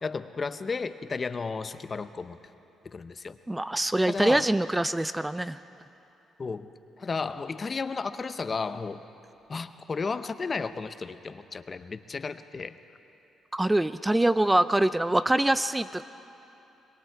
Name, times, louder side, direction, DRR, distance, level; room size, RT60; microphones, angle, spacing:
voice 1, 0.0-2.4 2.8-3.4 4.1-4.5 6.4-9.1 9.5-12.8, left 4 dB, 35° left, 11 dB, 0.8 m, -33 dB
voice 2, 3.5-5.6 13.5-16.0, right 1 dB, 10° right, 14 dB, 0.4 m, -24 dB
25.5 x 21.5 x 4.7 m, 2.9 s
cardioid pair, 90°, 0 cm